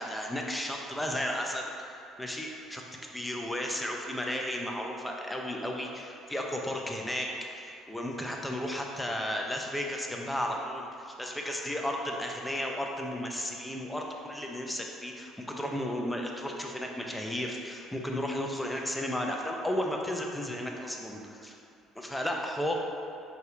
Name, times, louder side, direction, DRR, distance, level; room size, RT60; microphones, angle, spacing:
voice 1, 0.0-2.8 3.1-7.3 7.6-21.6 22.0-22.7, left 1 dB, 5° left, 1 dB, 0.4 m, -34 dB
4.4 x 2.7 x 2.4 m, 2.5 s
cardioid pair, 110°, 0 cm